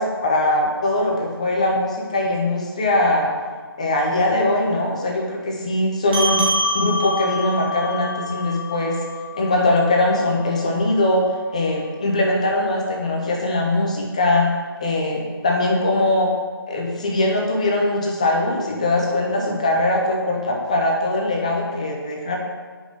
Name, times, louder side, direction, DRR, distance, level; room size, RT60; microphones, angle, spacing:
voice 1, 0.0-3.3 3.8-6.4 6.7-9.0 9.3-11.2 11.5-14.5 14.8-16.3 16.7-22.4, left 2 dB, 15° left, 0 dB, 0.5 m, -21 dB
sound 1, 6.1-10.9, left 1 dB, 25° right, 1.1 m, -27 dB
5.2 x 4.8 x 5.0 m, 1.5 s
figure-of-eight pair, 155°, 13 cm